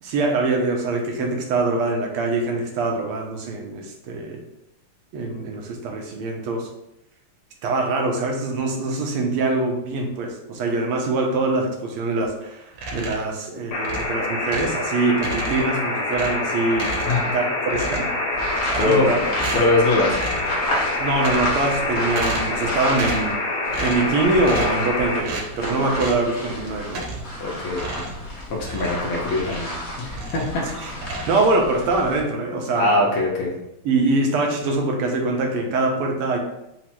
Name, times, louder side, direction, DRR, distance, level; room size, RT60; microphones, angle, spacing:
voice 1, 0.0-4.4 5.1-6.7 7.6-17.0 17.3-18.1 18.7-19.2 21.0-27.1 30.6-30.9 31.3-33.1 33.9-36.4, right 3 dB, 85° right, 2 dB, 1.6 m, -23 dB
sound 1, 12.7-13.4 13.8-14.8 15.2-15.8 16.1-17.4 17.7-18.2 18.6-19.1 19.3-19.8 20.1-20.5 21.1-21.7 22.1-22.6 22.9-23.4 23.7-24.1 24.4-24.9 25.2-25.5 25.9-26.3 26.9-27.4 27.7-29.8 30.1-30.6 30.9-31.8, right 2 dB, 65° right, 1.3 m, -33 dB
sound 2, 13.7-25.2, left 2 dB, 70° left, 1.2 m, -26 dB
sound 3, 18.3-23.3 23.6-32.2, left 1 dB, 40° left, 1.1 m, -31 dB
voice 2, 18.8-19.3 19.5-20.2 25.8-25.9 27.4-28.1 28.5-29.7 30.0-30.5 32.8-33.5, left 2 dB, 85° left, -3 dB, 1.8 m, -22 dB
4.9 x 2.1 x 4.3 m, 0.87 s
omnidirectional pair, 2.4 m